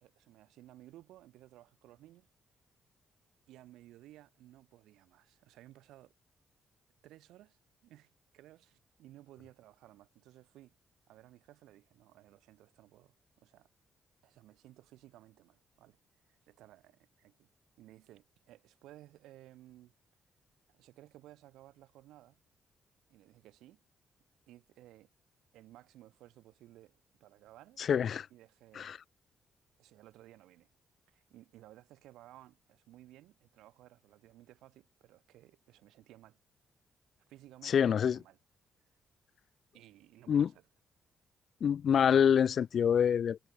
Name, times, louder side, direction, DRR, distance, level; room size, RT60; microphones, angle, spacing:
voice 1, 0.0-2.3 3.5-6.1 7.0-10.8 11.1-13.7 14.2-16.0 16.2-17.5 17.8-19.9 20.7-22.4 23.1-23.8 24.5-25.1 25.5-27.8 28.3-29.0 29.8-30.7 31.1-36.4 37.3-38.4 39.7-40.6, right 15 dB, 80° right, 2.0 m, -57 dB
voice 2, 27.8-28.3 28.8-29.0 37.6-38.2 40.3-40.5 41.6-43.5, left 8 dB, 60° left, 0.3 m, -26 dB
hypercardioid pair, 45°, 0 cm